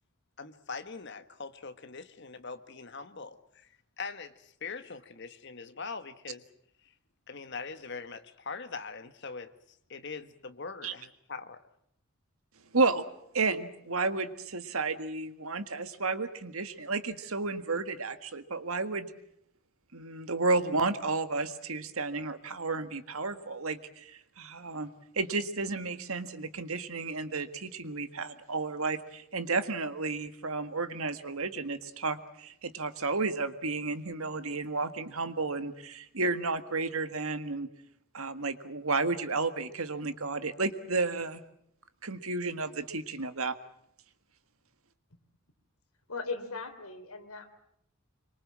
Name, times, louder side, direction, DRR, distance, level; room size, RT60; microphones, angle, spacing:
voice 1, 0.4-3.7 4.0-6.4 7.3-9.5 9.9-11.6, left 4 dB, 55° left, 9 dB, 1.5 m, -42 dB
voice 2, 12.7-13.0 13.3-19.1 19.9-24.9 25.2-37.7 38.1-41.4 42.0-43.5, right 3 dB, 80° right, 10 dB, 1.8 m, -32 dB
voice 3, 46.1-47.5, left 4 dB, 85° left, 7 dB, 3.5 m, -38 dB
26.0 x 23.5 x 7.5 m, 0.73 s
head